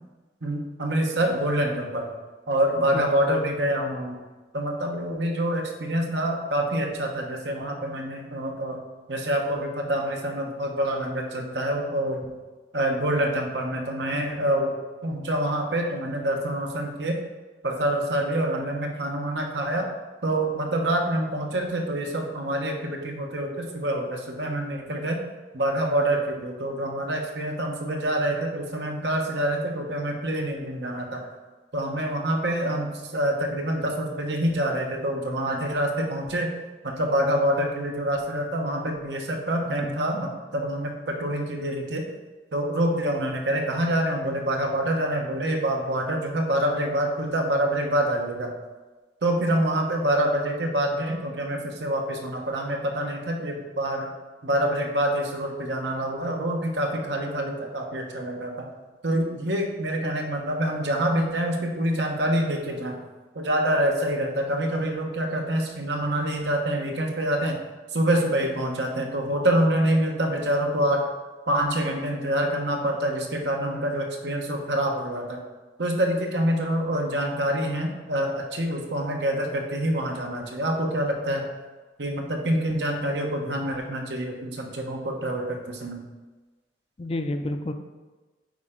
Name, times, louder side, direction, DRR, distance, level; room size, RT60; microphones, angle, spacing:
voice 1, 0.4-2.1 2.5-4.2 4.5-8.8 9.1-12.3 12.7-17.2 17.6-19.9 20.2-25.2 25.5-31.3 31.7-36.5 36.8-42.0 42.5-48.5 49.2-54.1 54.4-58.7 59.0-63.0 63.3-67.6 67.9-71.1 71.5-75.4 75.8-81.5 82.0-86.0, right 1 dB, 75° right, 1 dB, 1.2 m, -26 dB
voice 2, 2.8-3.1 39.8-40.0 87.0-87.7, left 1 dB, 35° left, 7 dB, 0.4 m, -30 dB
8.8 x 4.4 x 3.8 m, 1.3 s
head